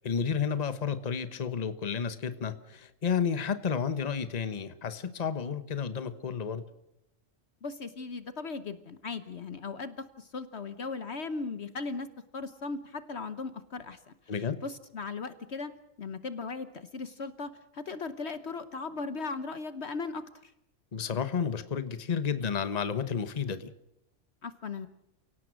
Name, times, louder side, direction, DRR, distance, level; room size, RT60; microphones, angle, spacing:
voice 1, 0.0-6.6 14.3-14.6 20.9-23.7, left 6 dB, 30° left, 12 dB, 1.1 m, -31 dB
voice 2, 7.6-12.1 12.3-14.1 14.6-15.7 16.0-20.5 24.4-24.9, left 4 dB, 55° left, 12 dB, 1.2 m, -37 dB
29.5 x 17.5 x 6.3 m, 0.83 s
omnidirectional pair, 1.4 m